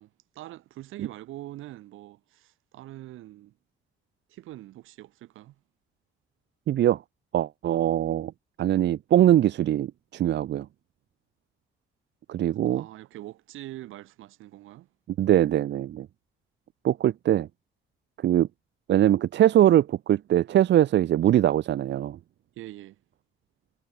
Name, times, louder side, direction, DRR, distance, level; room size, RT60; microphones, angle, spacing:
voice 1, 0.0-3.5 4.3-5.6 12.7-14.9 22.5-23.0, right 15 dB, 90° right, 3.0 m, -43 dB
voice 2, 6.7-7.0 7.3-8.3 8.6-10.7 12.3-12.8 15.2-16.1 16.8-17.5 18.2-18.5 18.9-22.2, right 12 dB, 60° right, 0.7 m, -22 dB
cardioid pair, 90°, 20 cm